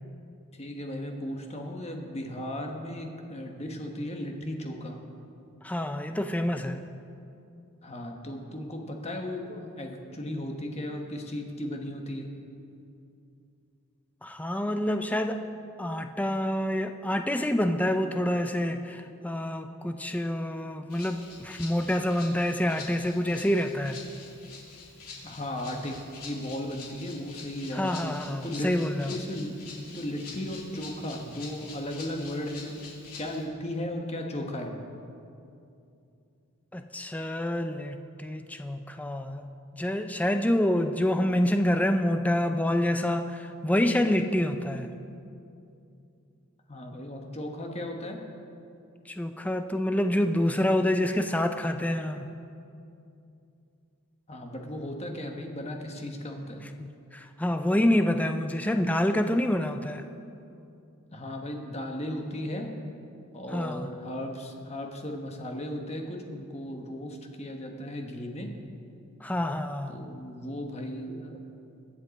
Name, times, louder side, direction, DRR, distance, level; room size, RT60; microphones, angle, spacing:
voice 1, 0.5-5.0 7.8-12.3 25.2-26.0 26.2-28.7 29.0-29.5 29.9-32.8 33.2-34.7 46.7-48.2 54.3-56.6 61.1-62.7 63.3-68.5 69.9-71.4, left 1 dB, 30° left, 2 dB, 1.2 m, -36 dB
voice 2, 5.6-6.9 14.2-15.4 15.8-24.0 27.7-29.2 36.7-39.5 39.7-44.9 49.1-52.3 56.8-60.1 63.5-63.9 69.2-70.0, left 1 dB, 5° left, 7 dB, 0.4 m, -27 dB
Rattle (instrument), 20.9-33.4, left 4 dB, 80° left, 2.7 m, -46 dB
22.0 x 7.6 x 4.1 m, 2.6 s
head